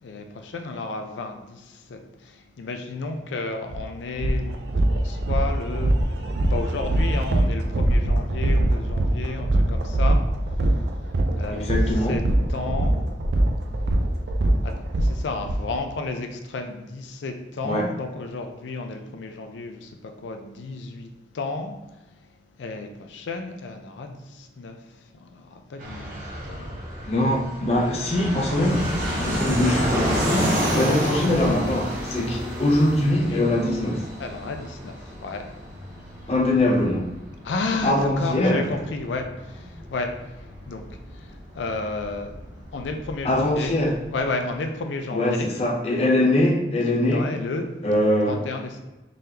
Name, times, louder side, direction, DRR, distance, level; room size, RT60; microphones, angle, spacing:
voice 1, 0.0-6.0 6.5-12.2 12.5-13.0 14.6-22.2 22.6-26.9 33.1-33.5 34.2-35.6 36.7-36.8 37.4-42.4 42.7-43.8 44.1-45.6 46.8-47.7 48.3-48.8, left 3 dB, 90° left, 5 dB, 0.4 m, -32 dB
sound 1, 3.7-3.8 4.2-15.6, right 1 dB, 70° right, 0.4 m, -22 dB
voice 2, 11.6-12.2 17.6-17.9 27.1-28.9 29.2-34.0 36.3-37.0 37.8-38.6 43.2-44.0 45.1-47.3 47.8-48.4, left 1 dB, 35° left, -1 dB, 0.5 m, -22 dB
Fixed-wing aircraft airplane, 25.8-44.2, equal, 50° right, 1.0 m, -31 dB
sound 2, 28.7-37.5, left 2 dB, 20° right, 0.8 m, -40 dB
3.8 x 3.3 x 2.8 m, 1.1 s
head